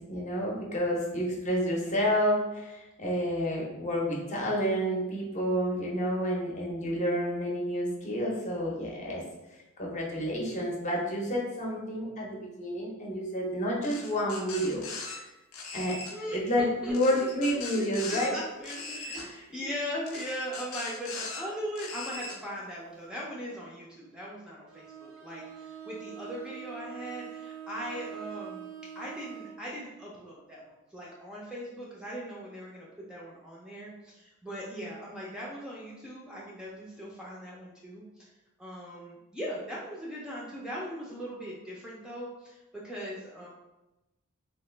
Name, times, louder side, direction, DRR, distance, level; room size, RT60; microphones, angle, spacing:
voice 1, 0.1-9.2 9.8-15.2 15.7-16.0 16.3-18.3 19.1-19.3, equal, 35° left, -3 dB, 0.7 m, -30 dB
sound 1, 13.8-15.2 15.5-16.1 16.9-18.3 18.6-19.3 20.1-21.4 21.8-22.4, left 3 dB, 90° left, 0.5 m, -40 dB
voice 2, 16.1-17.3 17.7-38.3 38.6-43.5, equal, 5° right, -5 dB, 0.4 m, -39 dB
Bowed string instrument, 24.7-29.7, right 10 dB, 75° right, 0.4 m, -44 dB
2.9 x 2.2 x 3.2 m, 1.0 s
head